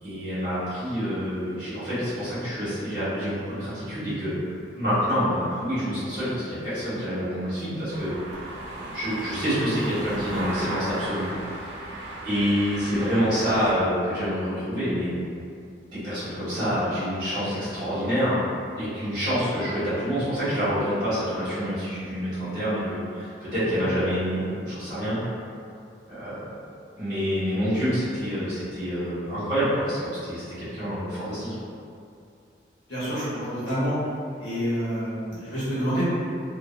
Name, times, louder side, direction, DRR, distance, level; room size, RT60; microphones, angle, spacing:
voice 1, 0.0-4.3 4.7-11.3 12.2-15.1 15.9-18.4 18.7-25.2 26.1-26.7 27.0-31.5, equal, 25° right, -14 dB, 1.2 m, -27 dB
sound 1, 7.9-13.7, right 1 dB, 65° right, 0.4 m, -36 dB
voice 2, 32.9-33.9 34.4-36.0, equal, 70° left, -12 dB, 1.0 m, -28 dB
2.9 x 2.1 x 2.5 m, 2.5 s
head